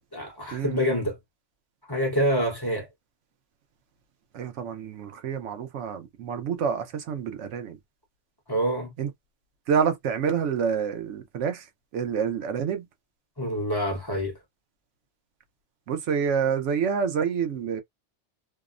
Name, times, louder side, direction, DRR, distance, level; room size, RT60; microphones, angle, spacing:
voice 1, 0.1-1.2 1.9-2.9 8.5-8.9 13.4-14.3, equal, 20° left, 0.8 m, -26 dB
voice 2, 4.3-7.8 9.0-9.1 9.7-11.6 11.9-12.8 15.9-17.8, right 7 dB, 80° right, 1.0 m, -27 dB
2.7 x 2.0 x 2.5 m
omnidirectional pair, 1.2 m